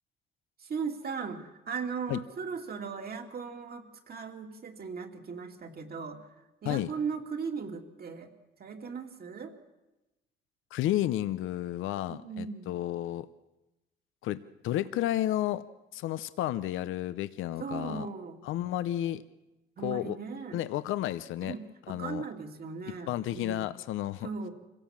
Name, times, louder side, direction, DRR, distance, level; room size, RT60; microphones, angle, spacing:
voice 1, 0.6-6.3 6.6-8.3 8.6-9.5 12.1-12.7 17.6-18.4 19.8-20.6 21.4-21.6 21.9-23.7 24.2-24.5, right 5 dB, 50° right, 4 dB, 2.8 m, -38 dB
voice 2, 10.7-13.3 14.2-15.6 15.9-18.1 18.4-19.2 19.8-20.2 20.5-21.5 21.9-22.3 23.1-24.3, left 13 dB, 85° left, 14 dB, 0.7 m, -32 dB
25.5 x 17.0 x 7.4 m, 1.0 s
cardioid pair, 90°, 20 cm